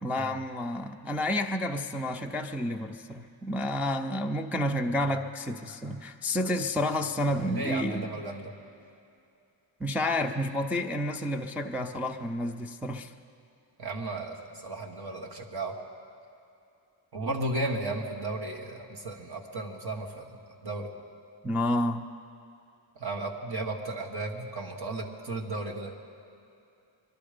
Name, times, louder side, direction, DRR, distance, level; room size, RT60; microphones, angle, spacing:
voice 1, 0.0-8.0 9.8-13.1 21.4-22.0, left 1 dB, 5° right, 1 dB, 0.3 m, -30 dB
voice 2, 7.5-8.5 11.7-11.9 13.8-15.8 17.1-20.9 22.9-26.0, right 2 dB, 50° right, 1 dB, 1.6 m, -34 dB
22.5 x 12.0 x 5.1 m, 2.6 s
wide cardioid pair, 150°, 49 cm